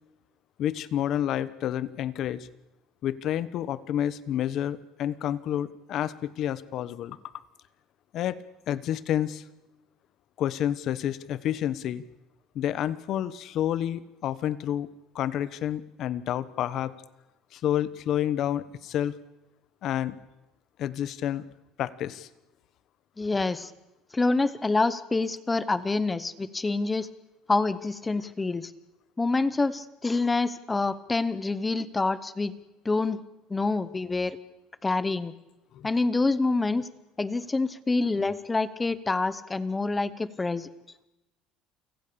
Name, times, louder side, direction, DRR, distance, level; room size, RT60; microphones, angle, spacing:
voice 1, 0.6-2.5 3.0-7.2 8.1-8.4 8.7-9.4 10.4-12.0 12.5-14.9 15.1-16.9 17.5-19.2 19.8-20.2 20.8-21.4 21.8-22.3 35.7-35.9, left 11 dB, 45° left, 16 dB, 1.1 m, -29 dB
voice 2, 23.2-23.7 24.1-27.1 27.5-28.7 29.2-32.5 32.8-33.2 33.5-34.4 34.8-35.3 35.8-36.9 37.2-40.7, left 3 dB, 10° left, 16 dB, 0.9 m, -26 dB
29.0 x 24.5 x 6.9 m, 1.0 s
cardioid pair, 165°, 0 cm